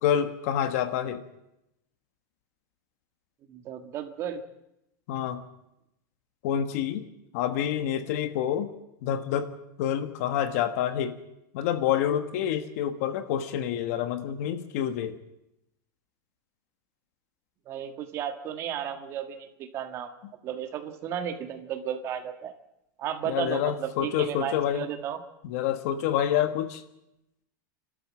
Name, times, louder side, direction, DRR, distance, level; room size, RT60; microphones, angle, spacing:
voice 1, 0.0-1.2 5.1-5.4 6.4-7.1 7.3-8.7 9.0-9.5 9.8-11.2 11.5-15.2 23.2-24.9 25.4-26.8, left 10 dB, 45° left, 10 dB, 1.4 m, -27 dB
voice 2, 3.5-4.4 17.7-20.1 20.4-22.5 23.0-25.2, right 9 dB, 25° right, 6 dB, 1.7 m, -34 dB
29.5 x 12.5 x 7.5 m, 0.88 s
supercardioid pair, 175°, 11 cm